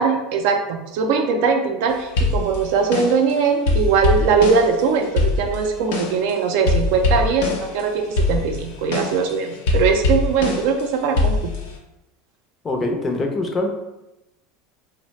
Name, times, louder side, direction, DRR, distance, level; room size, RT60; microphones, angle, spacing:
voice 1, 0.0-11.4, right 5 dB, 70° right, 4 dB, 0.4 m, -20 dB
sound 1, 2.2-3.3 3.7-6.3 6.7-7.8 8.1-10.8 11.2-11.8, left 3 dB, 80° left, 0.6 m, -22 dB
voice 2, 12.6-13.7, left 2 dB, 25° left, 3 dB, 0.5 m, -23 dB
2.7 x 2.1 x 3.1 m, 0.94 s
supercardioid pair, 110°, 0 cm